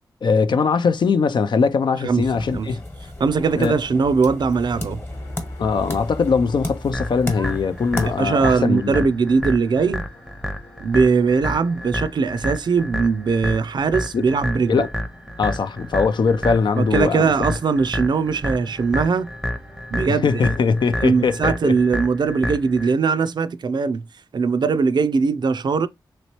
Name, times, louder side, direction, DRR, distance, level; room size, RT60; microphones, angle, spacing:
voice 1, 0.2-2.8 3.5-3.7 5.6-9.1 14.1-14.3 14.7-14.9 15.4-17.5 20.1-21.7, left 5 dB, 65° left, 0.4 m, -21 dB
voice 2, 2.0-2.7 3.2-5.0 8.0-10.1 10.8-14.9 16.8-19.3 19.9-20.5 21.0-24.0 24.3-25.9, right 5 dB, 60° right, 0.4 m, -20 dB
sound 1, 2.1-8.6, left 1 dB, 30° left, 1.1 m, -33 dB
sound 2, 5.1-21.6, left 2 dB, 85° left, 1.2 m, -50 dB
sound 3, 6.9-22.9, equal, 5° right, 0.6 m, -29 dB
3.1 x 3.0 x 2.9 m
cardioid pair, 70°, 8 cm